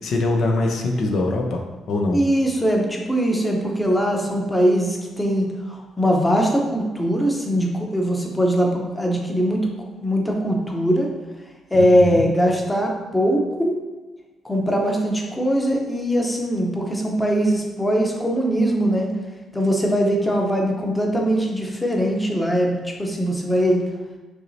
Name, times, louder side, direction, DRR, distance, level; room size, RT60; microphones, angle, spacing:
voice 1, 0.0-2.2 11.7-12.2, left 2 dB, 65° left, 1 dB, 0.6 m, -23 dB
voice 2, 2.1-9.7 10.0-11.1 11.7-13.8 14.4-19.1 19.5-23.8, equal, 10° left, 0 dB, 0.8 m, -21 dB
6.0 x 3.1 x 2.8 m, 1.2 s
cardioid pair, 90°, 0 cm